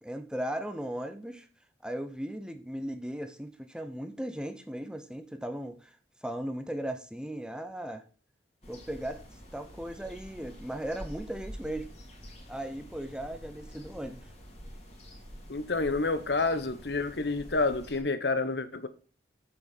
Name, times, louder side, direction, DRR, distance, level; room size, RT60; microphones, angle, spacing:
voice 1, 0.0-1.5 1.8-5.9 6.2-8.0 8.7-9.2 9.5-11.9 12.5-14.2, right 1 dB, 5° right, 0.9 m, -37 dB
sound 1, 8.6-18.0, equal, 35° left, 3.3 m, -47 dB
voice 2, 15.5-18.9, left 3 dB, 65° left, 1.0 m, -29 dB
8.3 x 7.0 x 5.4 m
head